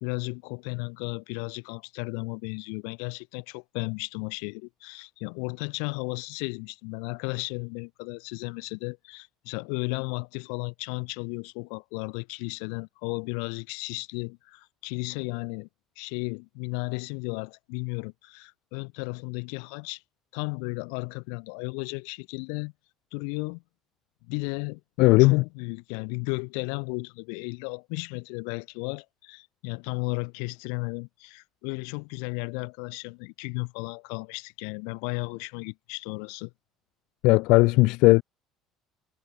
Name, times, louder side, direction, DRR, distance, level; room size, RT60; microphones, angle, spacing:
voice 1, 0.0-15.7 16.0-20.0 20.3-22.7 23.1-23.6 24.3-24.8 25.2-36.5, left 40 dB or more, 90° left, 1.0 m, -34 dB
voice 2, 25.0-25.4 37.2-38.2, left 23 dB, 75° left, 0.3 m, -17 dB
cardioid pair, 140°, 0 cm